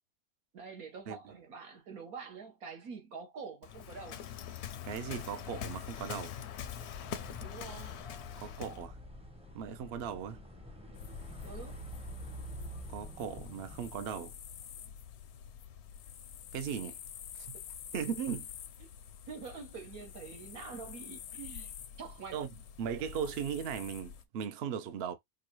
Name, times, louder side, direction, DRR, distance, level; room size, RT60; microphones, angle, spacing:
voice 1, 0.5-4.2 7.4-8.0 11.4-11.8 18.8-18.9 19.3-21.7 22.0-22.4, right 5 dB, 80° right, 1.7 m, -46 dB
Waves surf, 3.6-8.9, left 9 dB, 65° left, 0.7 m, -43 dB
voice 2, 4.8-6.4 8.4-9.0 9.5-10.4 12.9-14.4 16.5-17.0 17.5-17.6 17.9-18.5 21.4-21.7 22.3-22.5 22.8-25.1, right 8 dB, 60° right, 0.7 m, -38 dB
sound 1, 6.6-13.9, right 1 dB, 5° right, 0.5 m, -48 dB
sound 2, 10.9-24.3, left 8 dB, 85° left, 1.1 m, -48 dB
4.6 x 2.3 x 3.0 m
omnidirectional pair, 1.5 m